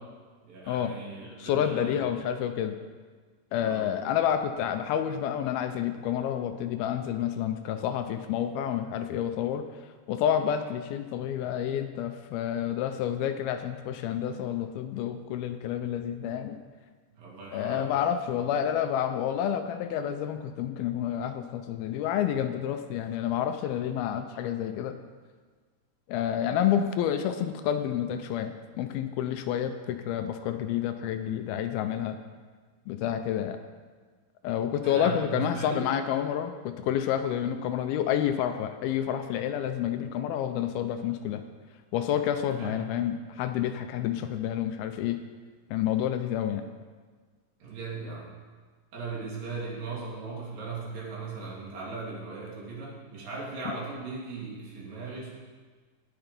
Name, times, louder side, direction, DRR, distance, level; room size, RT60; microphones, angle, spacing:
voice 1, 0.4-2.0 3.6-3.9 17.2-17.9 34.8-35.9 37.3-37.4 42.5-42.8 47.6-48.4 48.9-55.3, right 4 dB, 65° right, -4 dB, 4.1 m, -38 dB
voice 2, 1.4-2.8 3.5-9.6 10.1-16.6 17.5-24.9 26.1-32.2 32.9-33.6 34.4-41.4 41.9-45.2 45.7-46.6, left 10 dB, 80° left, 8 dB, 2.4 m, -29 dB
18.5 x 7.0 x 5.2 m, 1.5 s
omnidirectional pair, 4.5 m